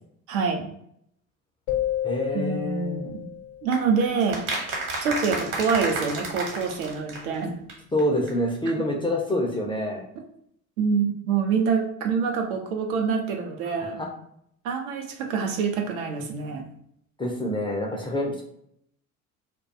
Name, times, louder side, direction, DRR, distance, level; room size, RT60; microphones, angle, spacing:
voice 1, 0.3-0.7 2.3-3.3 3.6-4.4 5.0-7.6 10.8-14.0 14.6-16.6, right 5 dB, 75° right, 3 dB, 0.6 m, -26 dB
sound 1, 1.7-3.9, left 11 dB, 65° left, 0.6 m, -30 dB
voice 2, 2.0-3.1 7.9-10.0 13.7-14.1 17.2-18.4, left 1 dB, 10° left, -1 dB, 0.4 m, -27 dB
sound 2, 3.7-7.7 8.0-8.1 8.3-8.4, right 2 dB, 50° right, 1.0 m, -31 dB
2.3 x 2.2 x 2.6 m, 0.71 s
hypercardioid pair, 65°, 42 cm